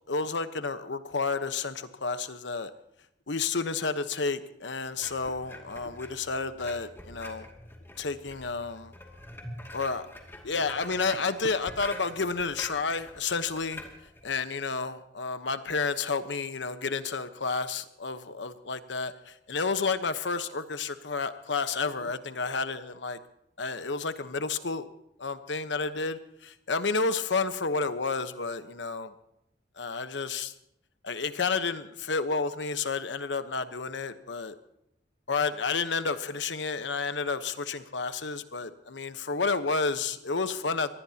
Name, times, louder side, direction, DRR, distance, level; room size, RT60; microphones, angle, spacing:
voice 1, 0.1-2.7 3.3-7.5 8.0-8.9 9.7-10.1 10.4-13.8 14.2-23.2 23.6-24.9 25.2-29.1 29.8-30.5 31.0-34.5 35.3-40.9, left 4 dB, 70° left, 10 dB, 1.1 m, -31 dB
sound 1, 5.0-14.3, left 1 dB, 15° left, 2.4 m, -45 dB
24.5 x 19.5 x 2.9 m, 0.79 s
head